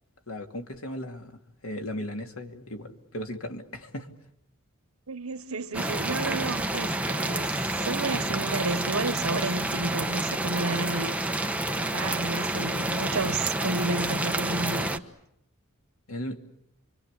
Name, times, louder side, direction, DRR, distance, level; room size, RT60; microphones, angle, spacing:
voice 1, 0.3-1.3 1.6-4.1 16.1-16.4, left 1 dB, 70° left, 2.7 m, -36 dB
voice 2, 5.1-11.1 11.7-15.0, right 3 dB, 80° right, 1.4 m, -31 dB
sound 1, 5.7-15.0, right 1 dB, 5° right, 1.2 m, -29 dB
29.0 x 24.0 x 8.4 m
head